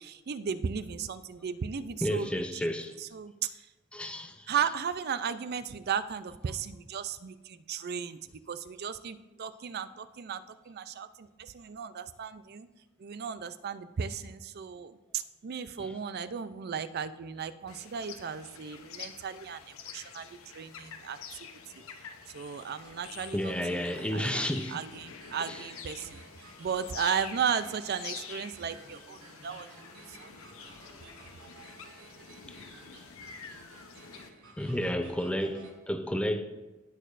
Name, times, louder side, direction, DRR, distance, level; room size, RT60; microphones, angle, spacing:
voice 1, 0.0-2.7 3.0-3.5 4.5-8.2 8.5-12.7 13.0-21.2 22.3-26.2 26.6-29.7 30.1-30.3, right 7 dB, 50° right, 0.4 m, -35 dB
voice 2, 2.0-3.0 3.9-4.6 15.8-15.9 23.3-24.8 25.5-25.7 32.5-32.6 34.6-36.4, equal, 5° left, 0.5 m, -32 dB
sound 1, 17.7-34.3, left 6 dB, 80° left, 0.8 m, -47 dB
sound 2, 22.8-35.7, right 3 dB, 90° right, 1.6 m, -54 dB
16.5 x 6.5 x 2.5 m
head